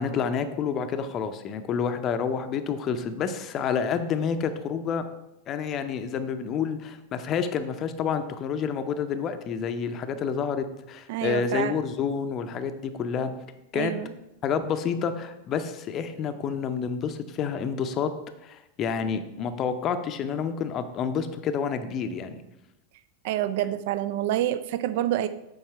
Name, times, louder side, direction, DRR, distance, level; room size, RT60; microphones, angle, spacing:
voice 1, 0.0-5.0 5.5-13.3 13.7-13.9 14.4-18.1 18.4-22.4, left 6 dB, 30° left, 9 dB, 0.6 m, -29 dB
voice 2, 11.1-11.8 13.7-14.1 23.2-25.3, right 12 dB, 50° right, 12 dB, 0.4 m, -27 dB
7.2 x 4.8 x 4.5 m, 0.93 s
figure-of-eight pair, 90°, 0 cm